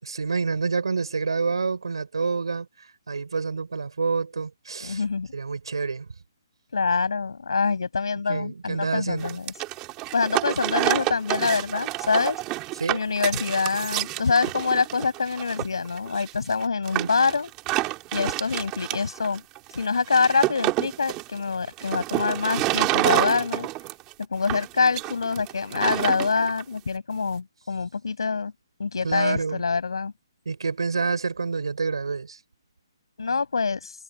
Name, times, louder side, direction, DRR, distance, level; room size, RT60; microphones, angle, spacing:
voice 1, 0.0-5.0 5.3-6.1 8.3-9.4 12.8-13.0 16.9-17.1 29.0-29.6 30.4-32.4, right 4 dB, 85° right, 6.6 m, -28 dB
voice 2, 4.8-5.3 6.7-9.5 10.1-12.4 12.9-17.5 18.1-19.4 19.7-23.7 24.3-28.5 28.8-30.1 33.2-33.9, left 4 dB, 80° left, 6.4 m, -25 dB
sound 1, 9.2-26.6, right 19 dB, 15° right, 2.9 m, -28 dB
hypercardioid pair, 175°, 3 cm